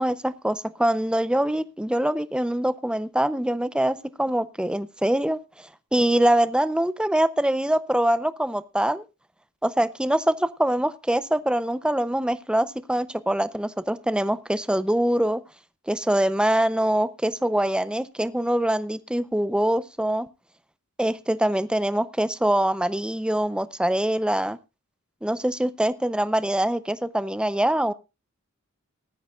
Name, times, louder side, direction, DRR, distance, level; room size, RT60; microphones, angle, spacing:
voice 1, 0.0-5.4 5.9-9.0 9.6-15.4 15.9-20.3 21.0-24.6 25.2-27.9, right 1 dB, 5° right, 14 dB, 0.5 m, -24 dB
19.5 x 13.0 x 2.4 m, 0.27 s
head